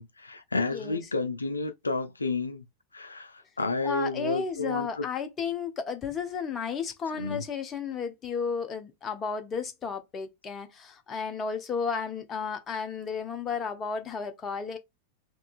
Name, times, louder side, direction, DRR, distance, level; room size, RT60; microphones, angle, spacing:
voice 1, 0.0-2.6 2.9-5.1 7.1-7.4, left 3 dB, 80° left, 0.4 m, -31 dB
voice 2, 3.8-14.8, left 6 dB, 25° left, 0.7 m, -33 dB
3.5 x 2.8 x 2.4 m
figure-of-eight pair, 90°, 0 cm